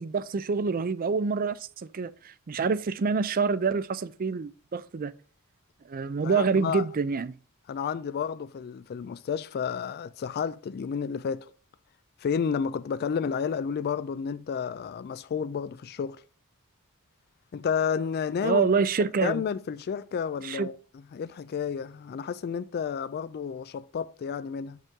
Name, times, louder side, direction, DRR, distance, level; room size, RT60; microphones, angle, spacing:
voice 1, 0.0-5.1 5.9-7.3 18.4-19.4 20.5-20.7, right 5 dB, 40° right, 0.4 m, -27 dB
voice 2, 6.2-6.8 7.7-11.5 12.2-16.2 17.5-18.7 19.2-20.8 21.1-24.8, left 7 dB, 45° left, 0.3 m, -31 dB
7.3 x 5.4 x 3.6 m
head